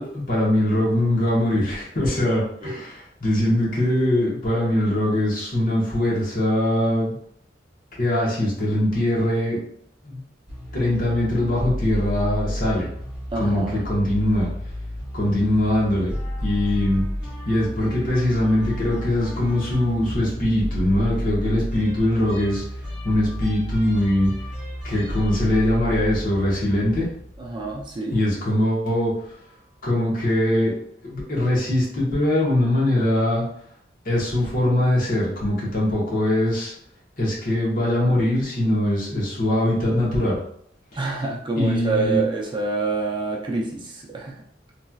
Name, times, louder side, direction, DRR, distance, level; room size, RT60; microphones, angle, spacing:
voice 1, 0.0-7.2 8.0-9.6 10.0-10.2 10.7-12.9 13.4-14.5 15.1-17.0 17.5-22.6 23.0-24.3 24.8-27.1 28.1-29.3 29.8-30.7 31.0-33.4 34.0-36.7 37.2-40.4 41.6-42.2, left 1 dB, 50° left, -4 dB, 1.1 m, -22 dB
sound 1, 10.5-27.8, equal, 5° right, 1.0 m, -31 dB
voice 2, 13.3-13.8 27.4-28.2 40.9-44.4, right 3 dB, 25° right, -2 dB, 0.4 m, -27 dB
3.1 x 2.6 x 2.3 m, 0.66 s
head